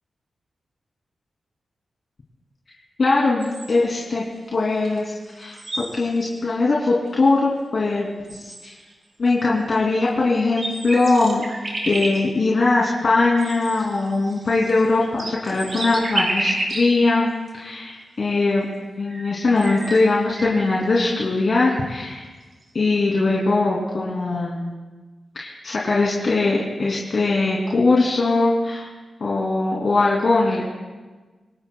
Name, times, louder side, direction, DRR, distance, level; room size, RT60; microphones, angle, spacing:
voice 1, 3.0-4.2 4.5-5.6 5.9-8.7 9.2-11.4 11.9-17.3 17.5-18.7 19.0-22.3 22.7-24.7 25.3-28.9 29.2-30.6, left 3 dB, 60° left, -4 dB, 2.8 m, -21 dB
sound 1, 3.4-4.0 4.8-5.0 5.2-6.3 7.0-7.1 7.9-8.0 8.3-8.9 10.0-10.1 10.4-12.2 13.4-16.9 17.5-17.6 18.7-18.8 19.0-20.8, right 2 dB, 55° right, 4.4 m, -30 dB
26.5 x 19.0 x 2.3 m, 1.3 s
cardioid pair, 55°, 0 cm